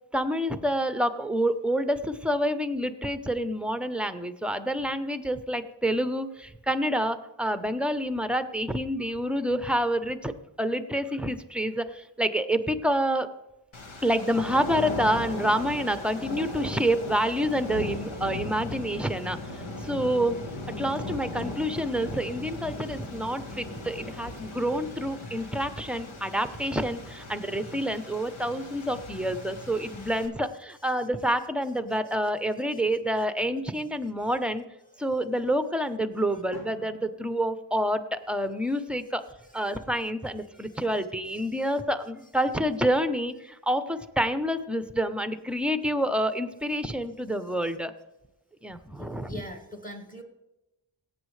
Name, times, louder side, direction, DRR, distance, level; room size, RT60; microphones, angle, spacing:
voice 1, 0.1-10.3 10.6-13.3 14.0-20.4 20.7-34.6 35.0-39.2 39.5-47.9 48.6-49.4, equal, ahead, 10 dB, 0.8 m, -28 dB
sound 1, 13.7-30.3, left 2 dB, 80° left, 1.7 m, -38 dB
Drum, 36.5-38.5, left 3 dB, 50° left, 3.3 m, -51 dB
voice 2, 49.0-50.2, equal, 15° left, 4 dB, 2.0 m, -41 dB
17.5 x 8.3 x 3.3 m, 0.96 s
cardioid pair, 65°, 47 cm